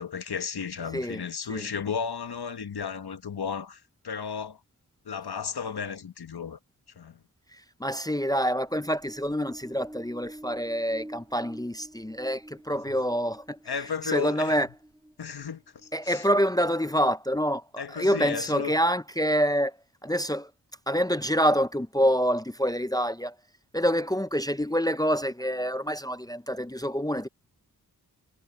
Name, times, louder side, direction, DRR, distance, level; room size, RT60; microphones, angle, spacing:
voice 1, 0.0-4.6 5.0-6.6 7.0-7.2 13.6-14.7 15.2-16.3 17.8-18.8, left 6 dB, 90° left, 1.3 m, -34 dB
voice 2, 7.8-13.6 14.1-14.7 15.9-19.8 20.0-20.5 20.9-23.3 23.7-27.3, equal, 10° left, 0.5 m, -26 dB
sound 1, 8.6-16.2, right 1 dB, 5° right, 2.4 m, -48 dB
wide cardioid pair, 100°, 38 cm